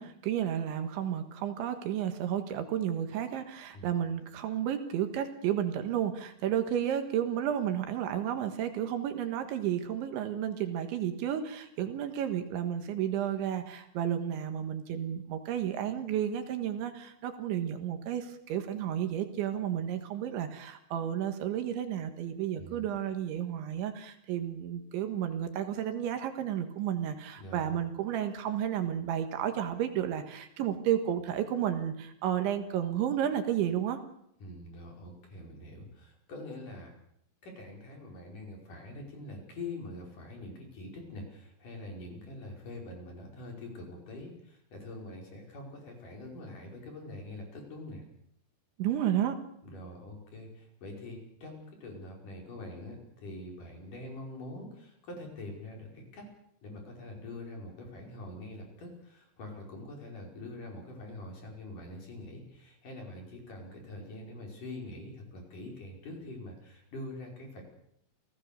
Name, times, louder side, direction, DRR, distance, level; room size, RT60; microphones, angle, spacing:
voice 1, 0.0-34.0 48.8-49.4, right 10 dB, 75° right, 7 dB, 3.7 m, -32 dB
voice 2, 22.6-22.9 27.4-27.8 34.4-36.9 37.4-48.0 49.6-56.2 56.6-67.6, left 2 dB, 40° left, 1 dB, 6.4 m, -44 dB
28.0 x 18.0 x 6.9 m, 0.73 s
omnidirectional pair, 5.7 m